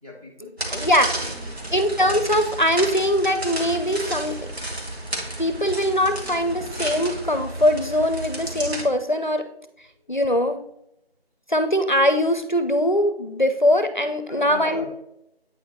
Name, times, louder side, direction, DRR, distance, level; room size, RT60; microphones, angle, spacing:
voice 1, 0.0-1.8 10.0-10.1 14.3-14.9, left 1 dB, 35° right, -1 dB, 1.7 m, -39 dB
sound 1, 0.6-8.8, right 1 dB, 80° right, 2.0 m, -32 dB
voice 2, 0.7-1.1 1.7-4.4 5.4-9.5 10.1-10.6 11.5-14.9, equal, 50° left, 9 dB, 0.5 m, -21 dB
8.7 x 4.6 x 2.9 m, 0.82 s
figure-of-eight pair, 180°, 31 cm